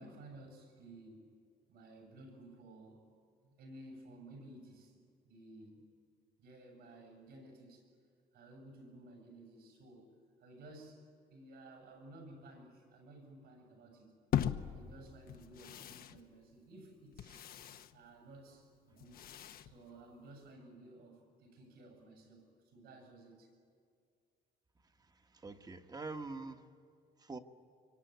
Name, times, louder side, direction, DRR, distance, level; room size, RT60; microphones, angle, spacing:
voice 1, 0.0-1.4 1.7-3.1 3.4-5.8 6.4-7.9 8.3-10.1 10.4-14.2 14.6-17.5 17.9-19.3 19.6-23.5, right 1 dB, 75° right, 3 dB, 7.9 m, -55 dB
sound 1, 14.3-20.5, left 10 dB, 60° left, 1.0 m, -41 dB
voice 2, 25.0-26.6 27.2-27.4, right 3 dB, 25° right, 7 dB, 1.4 m, -45 dB
24.5 x 24.0 x 9.5 m, 2.3 s
cardioid pair, 110°, 17 cm